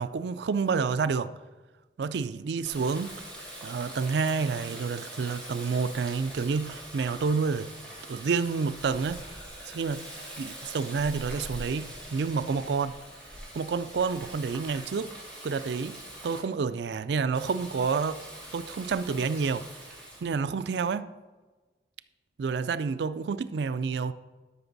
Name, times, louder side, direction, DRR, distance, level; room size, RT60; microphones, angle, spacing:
voice 1, 0.0-1.3 2.0-3.2 3.6-7.7 8.1-9.2 9.7-10.0 10.4-12.9 13.5-15.1 15.4-16.0 16.2-18.2 18.5-19.7 20.2-21.1 22.4-24.1, right 5 dB, 80° right, 0.4 m, -29 dB
Water tap faucet, 2.6-16.4 17.4-20.2, right 1 dB, 5° left, 1.7 m, -43 dB
12.5 x 5.8 x 4.0 m
head